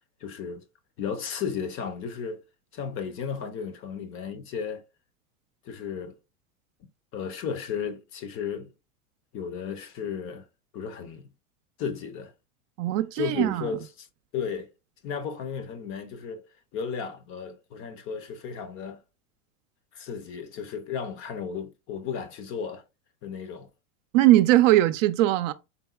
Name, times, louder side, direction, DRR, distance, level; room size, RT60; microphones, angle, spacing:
voice 1, 0.2-0.6 1.0-2.4 2.7-4.8 5.7-6.2 7.1-8.7 9.3-10.4 10.7-11.3 11.8-12.3 13.2-14.1 14.3-14.7 15.0-19.0 19.9-22.8 23.2-23.7, left 6 dB, 30° left, 0.5 m, -34 dB
voice 2, 12.8-13.7 24.1-25.5, right 15 dB, 65° right, 0.5 m, -20 dB
3.8 x 3.5 x 2.3 m
hypercardioid pair, 120°, 42 cm